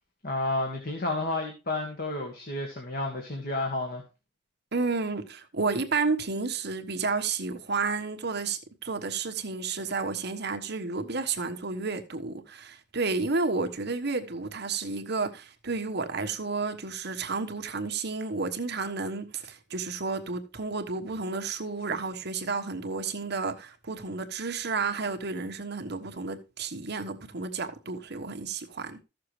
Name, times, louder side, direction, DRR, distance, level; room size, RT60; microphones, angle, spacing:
voice 1, 0.2-4.0, left 2 dB, 50° left, 1.9 m, -31 dB
voice 2, 4.7-29.0, right 4 dB, 60° right, 1.3 m, -31 dB
14.5 x 6.7 x 3.2 m
head